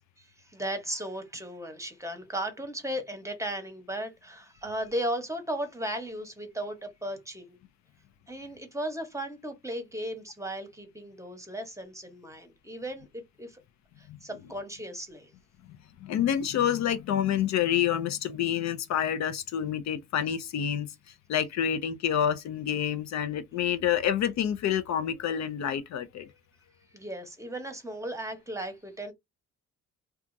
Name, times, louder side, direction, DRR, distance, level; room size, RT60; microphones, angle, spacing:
voice 1, 0.2-7.6 8.3-13.6 14.0-15.3 26.9-29.1, right 1 dB, 10° right, 0.9 m, -36 dB
voice 2, 16.0-20.9 21.3-26.3, left 9 dB, 65° left, 0.5 m, -28 dB
2.7 x 2.3 x 2.5 m
cardioid pair, 90°, 30 cm